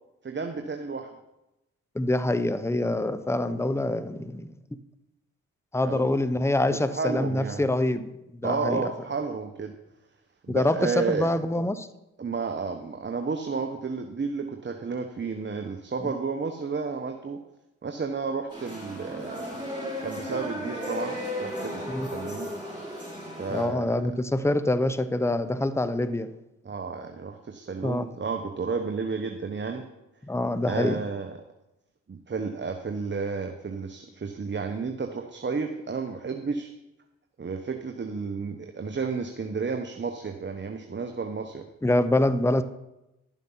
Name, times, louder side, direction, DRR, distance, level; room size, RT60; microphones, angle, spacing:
voice 1, 0.2-1.1 5.8-6.2 6.7-7.7 8.4-9.7 10.4-11.3 12.2-17.4 17.8-19.6 20.0-22.5 23.4-24.0 26.6-29.8 30.7-31.4 32.1-36.7 37.4-41.6, right 4 dB, 30° right, 5 dB, 1.1 m, -32 dB
voice 2, 1.9-4.5 5.7-8.1 8.4-8.9 10.5-11.9 16.0-16.1 21.9-22.1 23.5-26.3 27.8-28.1 30.3-31.0 41.8-42.6, left 1 dB, 5° left, 13 dB, 0.8 m, -25 dB
sound 1, 18.5-23.6, equal, 10° right, 4.6 m, -35 dB
11.0 x 7.3 x 5.7 m, 0.94 s
hypercardioid pair, 45°, 36 cm